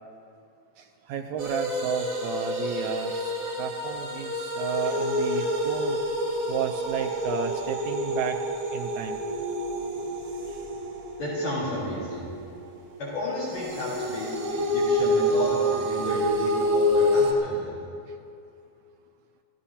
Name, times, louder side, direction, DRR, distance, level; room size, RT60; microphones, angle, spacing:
voice 1, 1.1-6.0 6.5-8.4 8.7-9.2, right 8 dB, 80° right, 4 dB, 1.9 m, -32 dB
sound 1, 1.4-12.9 13.5-17.3, equal, 55° right, 3.2 m, -28 dB
voice 2, 11.2-12.3 13.0-17.8, left 1 dB, 60° left, -9 dB, 4.6 m, -32 dB
25.5 x 17.0 x 2.8 m, 2.5 s
omnidirectional pair, 3.6 m